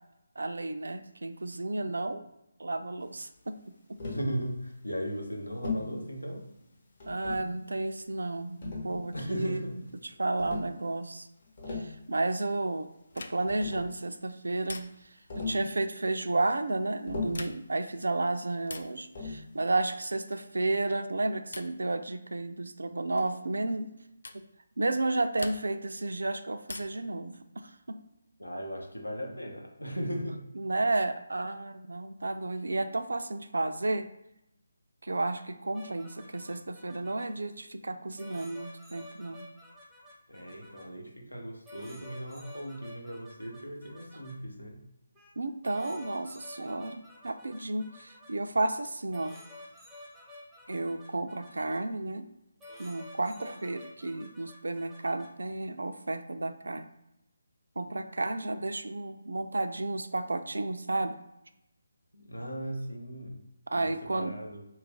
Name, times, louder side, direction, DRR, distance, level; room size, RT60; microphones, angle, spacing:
voice 1, 0.4-2.2 2.6-3.6 3.9-4.0 7.1-9.8 10.2-11.3 11.8-12.9 13.2-14.9 15.4-23.9 24.3-24.5 24.8-27.4 27.6-28.0 30.6-34.1 35.0-39.5 45.4-49.4 50.7-52.3 52.8-56.9 57.8-61.2 63.7-64.3, right 2 dB, 65° right, 9 dB, 0.3 m, -32 dB
voice 2, 4.0-6.4 9.1-9.8 28.4-30.5 40.3-44.8 62.1-63.4 63.7-64.6, equal, 85° left, 1 dB, 0.8 m, -37 dB
Tap, 4.0-4.3 5.6-5.9 7.0-7.6 8.6-9.4 10.4-10.7 11.4-12.0 13.1-13.2 13.5-14.0 15.3-15.7 17.1-17.5 19.1-19.5, left 4 dB, 40° left, 0.9 m, -37 dB
sound 1, 13.1-13.6 14.6-15.2 17.2-17.8 18.6-19.0 20.3-20.6 21.5-21.9 23.2-23.4 24.2-24.5 25.4-25.9 26.6-27.1 28.6-29.3, left 2 dB, 60° left, 0.3 m, -45 dB
sound 2, 35.7-37.3 38.2-40.8 41.7-44.3 45.1-45.3 45.6-48.3 49.1-51.8 52.6-55.3, left 1 dB, 5° right, 0.6 m, -51 dB
3.0 x 2.4 x 3.4 m, 0.85 s
figure-of-eight pair, 150°, 0 cm